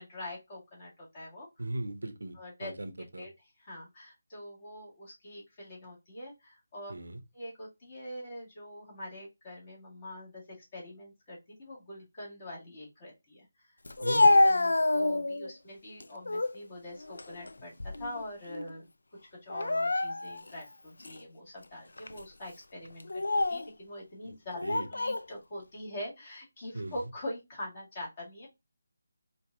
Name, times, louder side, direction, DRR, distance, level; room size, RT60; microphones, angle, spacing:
voice 1, 0.0-1.5 2.4-2.7 3.2-3.3 3.6-6.9 7.3-13.7 14.4-17.7 18.0-18.9 19.4-23.1 23.5-24.6 24.9-28.5, left 1 dB, 35° left, 1.8 m, -44 dB
voice 2, 1.6-3.3 6.9-7.2 14.0-14.4 24.2-24.3 24.6-24.9 26.7-27.0, right 2 dB, 80° right, 0.7 m, -38 dB
Speech, 13.9-15.5 16.0-16.6 17.0-18.2 18.5-18.7 19.5-20.5 21.0-21.2 22.0-22.2 23.0-23.7 24.6-25.2, left 2 dB, 80° left, 0.3 m, -27 dB
4.4 x 2.6 x 2.3 m
figure-of-eight pair, 160°, 0 cm